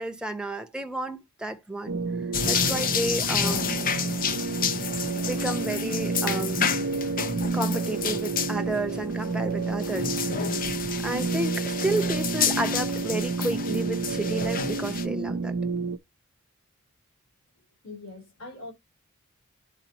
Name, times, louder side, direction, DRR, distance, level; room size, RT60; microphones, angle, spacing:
voice 1, 0.0-2.0 2.5-3.8 5.2-6.8 7.5-10.5 11.0-15.5, right 1 dB, 5° right, 0.8 m, -31 dB
sound 1, 1.9-16.0, right 4 dB, 80° right, 0.6 m, -30 dB
sound 2, 2.3-15.1, left 6 dB, 40° left, 0.6 m, -30 dB
voice 2, 17.8-18.7, left 2 dB, 65° left, 3.5 m, -42 dB
10.5 x 4.0 x 2.8 m
head